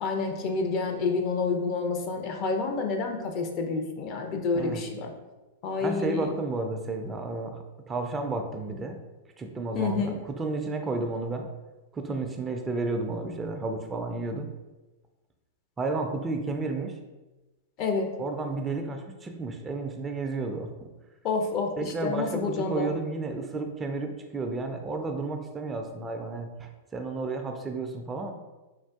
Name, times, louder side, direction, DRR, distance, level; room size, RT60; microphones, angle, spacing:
voice 1, 0.0-5.1 5.6-6.3 9.7-10.2 17.8-18.2 21.2-21.7 22.0-22.9, left 4 dB, 40° left, 4 dB, 0.5 m, -28 dB
voice 2, 5.8-9.0 9.4-11.5 11.9-14.5 15.8-17.0 18.2-20.7 21.8-28.3, right 3 dB, 20° right, 4 dB, 0.3 m, -32 dB
3.4 x 2.4 x 2.3 m, 1.1 s
hypercardioid pair, 105°, 0 cm